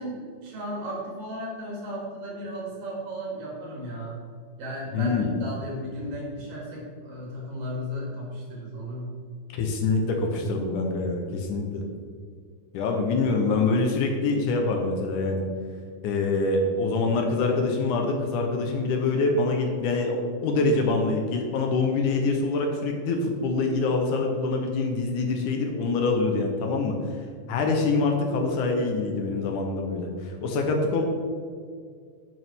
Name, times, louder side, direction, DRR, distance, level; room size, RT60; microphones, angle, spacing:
voice 1, 0.0-4.3 4.6-9.1 10.2-10.5, equal, 80° right, -4 dB, 3.8 m, -35 dB
voice 2, 4.9-5.3 9.5-11.8 12.7-15.4 16.0-26.9 27.5-31.0, left 3 dB, 75° left, 3 dB, 2.1 m, -25 dB
9.2 x 6.0 x 3.5 m, 2.1 s
omnidirectional pair, 3.9 m